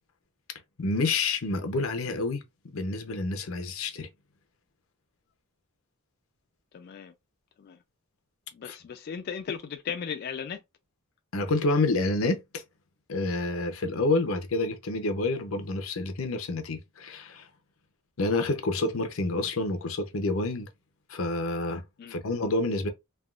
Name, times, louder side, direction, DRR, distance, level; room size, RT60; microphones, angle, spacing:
voice 1, 0.8-2.4 2.7-4.1 8.7-8.8 11.3-12.6 13.1-17.5 18.2-20.7 21.1-22.9, left 2 dB, 90° left, 0.7 m, -28 dB
voice 2, 6.7-7.1 7.6-7.8 8.5-10.6 22.0-22.2, left 7 dB, 50° left, 0.3 m, -36 dB
3.4 x 2.3 x 2.3 m
head